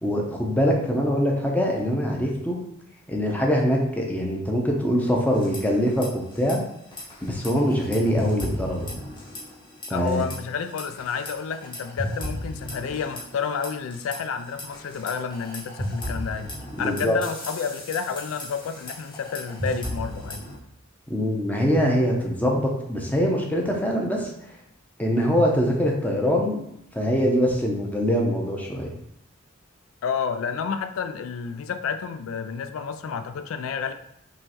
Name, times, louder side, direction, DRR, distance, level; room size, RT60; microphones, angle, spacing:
voice 1, 0.0-2.6 3.1-6.6 7.2-8.9 9.9-10.2 16.8-17.2 21.1-24.3 25.0-26.6 26.9-28.9, equal, 10° left, -1 dB, 0.7 m, -23 dB
sound 1, 5.3-6.1 6.3-6.5 6.9-9.6 9.8-10.3 10.8-14.2 14.6-20.5, left 1 dB, 25° left, 1.3 m, -34 dB
voice 2, 9.9-16.5 16.8-20.5 30.0-33.9, left 6 dB, 90° left, 9 dB, 0.4 m, -30 dB
5.2 x 3.1 x 3.0 m, 0.78 s
head